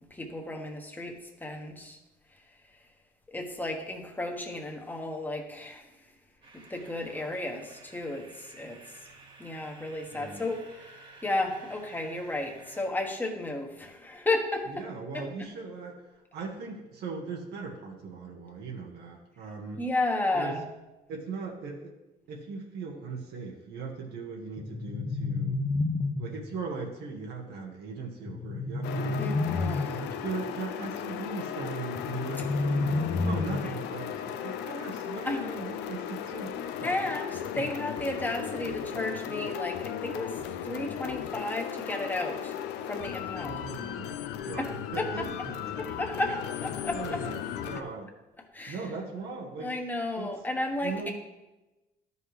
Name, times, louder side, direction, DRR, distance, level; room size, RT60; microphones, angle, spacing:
voice 1, 0.1-2.0 3.3-5.9 6.5-8.8 9.4-14.8 15.1-15.2 19.8-20.6 29.2-30.0 33.5-33.8 35.2-35.5 36.8-42.5 42.9-43.6 44.6-45.1 45.8-47.2 48.5-48.8 49.6-51.1, left 2 dB, 10° left, 1 dB, 1.3 m, -33 dB
sound 1, 6.4-12.9, right 3 dB, 30° right, 1.7 m, -52 dB
voice 2, 10.1-10.5 14.7-19.8 20.3-20.6 21.1-21.9 22.3-25.6 26.2-29.3 30.0-37.0 37.5-37.7 43.4-45.7 46.9-48.1 48.7-49.7 50.2-50.4 50.8-51.1, right 4 dB, 75° right, -1 dB, 1.4 m, -39 dB
sound 2, 24.6-26.6 28.3-30.1 31.9-33.9, left 3 dB, 25° left, 0.8 m, -30 dB
sound 3, 28.8-47.8, left 9 dB, 90° left, 0.6 m, -36 dB
12.5 x 5.5 x 3.2 m, 1.0 s
cardioid pair, 110°, 17 cm